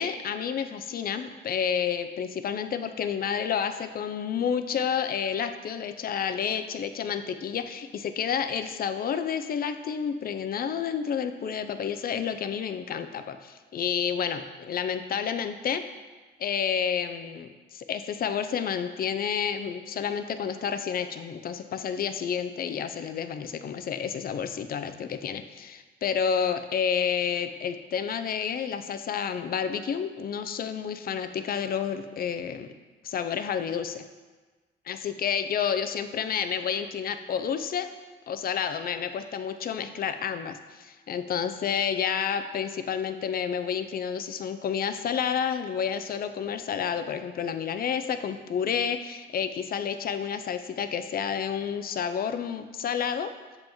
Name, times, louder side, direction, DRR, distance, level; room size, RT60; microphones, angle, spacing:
voice 1, 0.0-15.8 16.4-32.7 33.0-34.0 34.9-37.9 38.3-53.3, left 7 dB, 50° left, 10 dB, 0.5 m, -30 dB
6.9 x 5.4 x 3.0 m, 1.3 s
cardioid pair, 90°, 20 cm